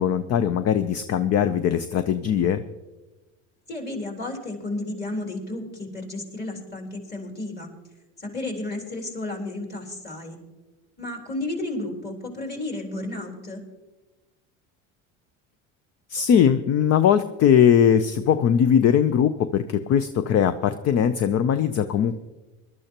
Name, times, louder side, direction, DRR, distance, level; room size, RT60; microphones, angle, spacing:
voice 1, 0.0-2.6 16.1-22.2, left 8 dB, 45° left, 12 dB, 0.7 m, -20 dB
voice 2, 3.7-7.7 8.2-10.4 11.0-13.6, left 2 dB, 25° left, 1 dB, 3.9 m, -32 dB
20.5 x 12.5 x 3.0 m, 1.2 s
supercardioid pair, 95°, 36 cm